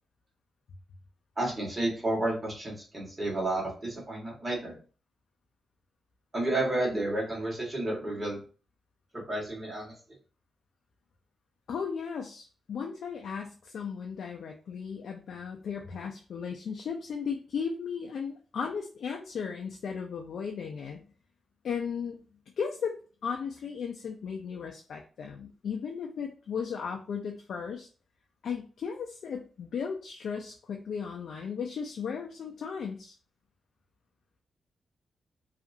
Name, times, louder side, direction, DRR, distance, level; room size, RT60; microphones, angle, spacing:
voice 1, 1.4-4.8 6.3-8.4 9.1-9.9, right 1 dB, 25° right, -4 dB, 1.3 m, -31 dB
voice 2, 11.7-21.0 21.6-22.2 22.6-27.9 28.4-33.1, left 6 dB, 70° left, 2 dB, 0.4 m, -36 dB
2.8 x 2.4 x 2.6 m, 0.37 s
wide cardioid pair, 120°, 0 cm